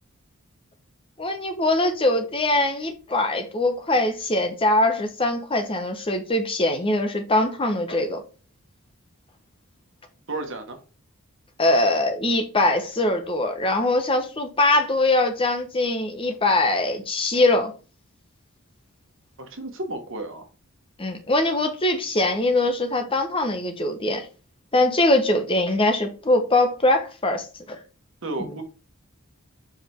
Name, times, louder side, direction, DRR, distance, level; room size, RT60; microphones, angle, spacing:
voice 1, 1.2-8.2 11.6-17.7 21.0-24.3 24.7-27.8 28.4-28.6, left 2 dB, 25° left, 1.0 m, -22 dB
voice 2, 10.3-10.8 19.4-20.5 28.2-28.6, right 2 dB, 60° right, 1.3 m, -32 dB
5.0 x 4.9 x 4.4 m
head